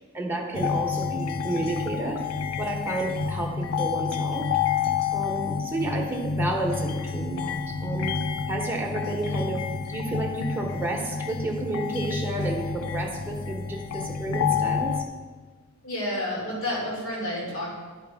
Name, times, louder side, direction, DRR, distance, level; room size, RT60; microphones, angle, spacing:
voice 1, 0.1-2.2 2.6-4.5 5.1-8.2 8.5-9.6 9.9-15.0, right 2 dB, 10° right, -1 dB, 1.0 m, -31 dB
sound 1, 0.5-15.1, left 6 dB, 90° left, 0.5 m, -29 dB
voice 2, 15.8-17.7, left 1 dB, 70° left, -5 dB, 2.5 m, -30 dB
11.5 x 4.9 x 3.5 m, 1.5 s
head